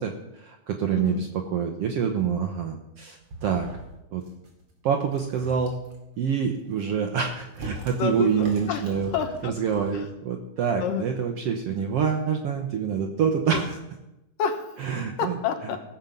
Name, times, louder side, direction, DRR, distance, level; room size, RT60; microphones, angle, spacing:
voice 1, 0.0-3.7 4.1-4.2 4.8-5.7 6.2-9.1 9.4-13.8 14.8-15.4, right 7 dB, 70° right, 4 dB, 1.4 m, -26 dB
voice 2, 0.9-1.2 8.0-9.5 9.9-10.0 10.8-11.1 13.5-13.6 14.4-14.7 15.2-15.8, left 7 dB, 90° left, 5 dB, 2.8 m, -29 dB
sound 1, 3.2-4.0 4.2-4.6 5.0-6.0 6.5-10.0, right 1 dB, 45° right, 2.9 m, -42 dB
17.5 x 7.3 x 5.3 m, 0.92 s
omnidirectional pair, 3.8 m